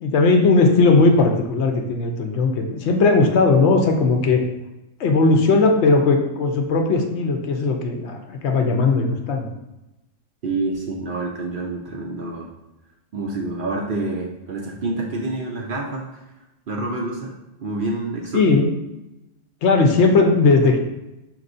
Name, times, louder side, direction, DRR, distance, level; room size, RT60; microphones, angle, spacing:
voice 1, 0.0-4.4 5.0-9.5 18.3-18.7 19.6-20.8, left 3 dB, 70° left, 3 dB, 0.8 m, -17 dB
voice 2, 10.4-12.5 13.1-16.2 16.7-17.3 17.6-18.6, right 2 dB, 60° right, 0 dB, 0.6 m, -27 dB
5.3 x 3.0 x 2.5 m, 0.95 s
omnidirectional pair, 1.3 m